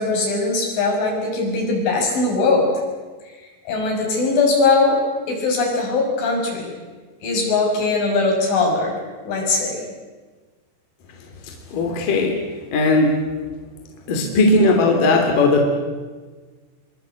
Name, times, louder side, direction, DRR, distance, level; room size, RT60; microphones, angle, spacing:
voice 1, 0.0-2.7 3.7-5.0 5.3-6.7 7.2-9.0 9.3-9.8, left 3 dB, 65° left, 0 dB, 8.7 m, -20 dB
voice 2, 11.7-12.4 12.7-13.2 14.1-15.7, left 2 dB, 45° left, 2 dB, 4.2 m, -17 dB
26.0 x 23.5 x 8.4 m, 1.4 s
omnidirectional pair, 5.9 m